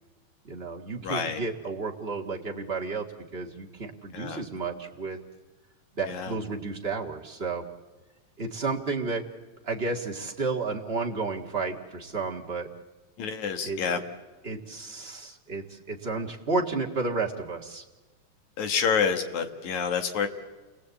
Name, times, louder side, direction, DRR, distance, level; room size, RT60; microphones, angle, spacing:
voice 1, 0.4-3.1 3.3-5.2 6.0-7.6 8.4-9.2 9.6-12.7 13.6-13.8 14.4-17.8, right 4 dB, 30° right, 0 dB, 1.2 m, -32 dB
voice 2, 1.0-1.4 4.1-4.4 6.0-6.4 13.2-14.0 18.6-20.3, left 6 dB, 65° left, 7 dB, 2.9 m, -28 dB
29.5 x 20.0 x 8.3 m, 1.3 s
omnidirectional pair, 3.8 m